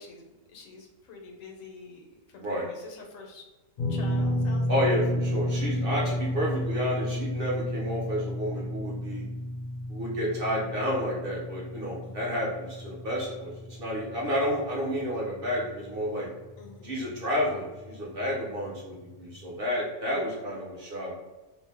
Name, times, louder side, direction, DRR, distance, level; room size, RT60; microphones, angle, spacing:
voice 1, 0.0-3.5 3.9-5.1 12.0-12.4 16.6-17.0 20.1-20.5, left 3 dB, 85° left, 2 dB, 1.0 m, -47 dB
sound 1, 3.8-16.0 16.3-16.5 18.2-18.3, equal, 60° left, 0.4 m, -32 dB
voice 2, 4.7-9.3 9.9-16.3 16.8-21.2, equal, 55° right, -4 dB, 0.7 m, -30 dB
2.5 x 2.0 x 3.4 m, 1.2 s
omnidirectional pair, 1.4 m